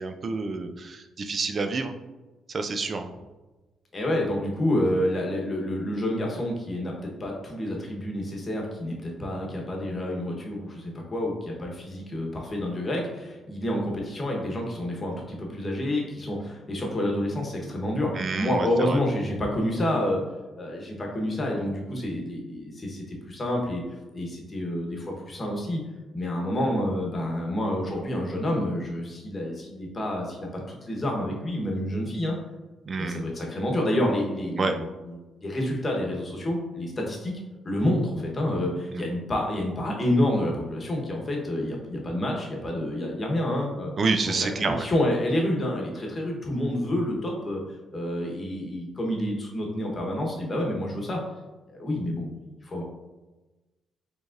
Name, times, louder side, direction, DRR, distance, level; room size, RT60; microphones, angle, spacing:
voice 1, 0.0-1.9 2.5-3.1 18.2-19.0 32.9-33.2 34.6-34.8 38.9-39.1 44.0-44.9, right 4 dB, 45° right, 7 dB, 0.4 m, -28 dB
voice 2, 3.9-6.9 7.2-20.2 20.6-23.8 24.1-25.8 26.1-32.4 33.0-37.3 37.6-43.9 44.4-44.5 44.8-47.6 47.9-51.2 51.7-52.4 52.6-52.8, left 1 dB, 30° left, -1 dB, 1.0 m, -28 dB
5.0 x 3.2 x 2.5 m, 1.1 s
cardioid pair, 90°, 0 cm